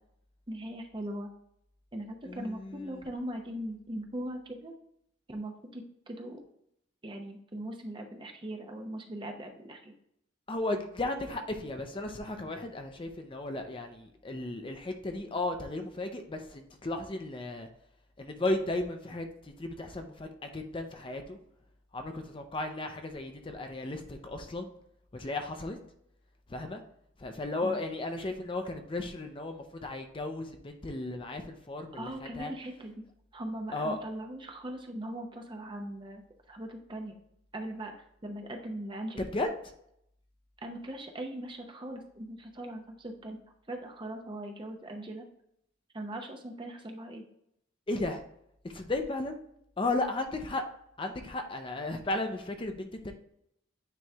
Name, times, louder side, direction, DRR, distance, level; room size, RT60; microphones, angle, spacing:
voice 1, 0.5-1.3 1.9-4.7 5.3-6.4 7.0-9.9 27.6-27.8 32.0-32.9 33.3-36.2 36.5-37.2 37.5-39.2 40.6-43.4 43.7-45.3 45.9-47.3, right 1 dB, 25° right, 3 dB, 0.7 m, -40 dB
voice 2, 2.2-3.1 10.5-17.7 18.2-21.4 21.9-24.7 25.1-25.8 26.5-26.8 27.2-32.5 33.7-34.0 39.2-39.5 47.9-48.2 48.6-49.4 49.8-50.6 51.0-53.1, left 2 dB, 25° left, 5 dB, 0.5 m, -35 dB
9.0 x 3.1 x 3.4 m, 0.74 s
head